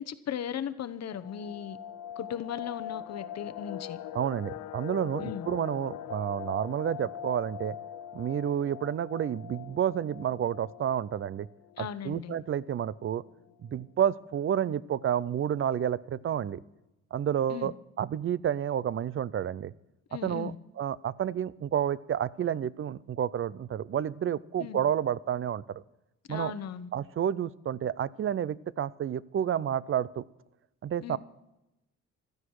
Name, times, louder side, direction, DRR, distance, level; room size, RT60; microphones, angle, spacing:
voice 1, 0.0-1.8 2.2-4.0 5.2-5.5 11.8-12.3 17.5-17.7 20.1-20.6 24.6-24.8 26.3-26.9 31.0-31.2, left 9 dB, 60° left, 11 dB, 1.0 m, -37 dB
sound 1, 1.1-11.9 12.2-12.3 12.6-12.8 13.3-13.7 14.2-14.3 14.5-15.0 15.3-15.4, left 11 dB, 85° left, 0.8 m, -42 dB
voice 2, 4.1-7.8 8.1-11.5 11.8-13.2 13.6-16.6 17.1-19.7 20.2-25.8 26.3-26.5 26.9-30.2 30.8-31.2, right 9 dB, 45° right, 20 dB, 0.6 m, -30 dB
16.0 x 13.0 x 4.8 m, 0.95 s
cardioid pair, 90°, 30 cm